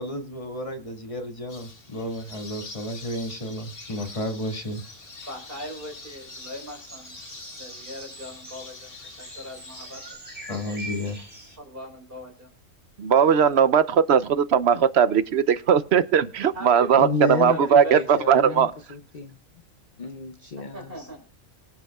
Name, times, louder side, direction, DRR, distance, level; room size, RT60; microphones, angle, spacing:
voice 1, 0.0-4.8 10.5-11.2, left 1 dB, 25° left, 4 dB, 2.0 m, -32 dB
Birds - Australian outback, 1.5-10.1, left 3 dB, 65° left, 2.3 m, -45 dB
sound 1, 4.4-11.6, right 1 dB, 30° right, 3.8 m, -44 dB
voice 2, 5.3-7.1 7.6-10.2 11.6-12.5 16.5-16.9 17.5-18.7 20.6-21.2, equal, 45° right, 3 dB, 4.2 m, -39 dB
voice 3, 13.0-18.7, right 7 dB, 60° right, 14 dB, 0.9 m, -19 dB
voice 4, 17.0-17.7 17.9-19.4 20.0-21.1, left 3 dB, 45° left, 7 dB, 0.8 m, -30 dB
24.5 x 8.3 x 2.3 m, 0.43 s
omnidirectional pair, 1.4 m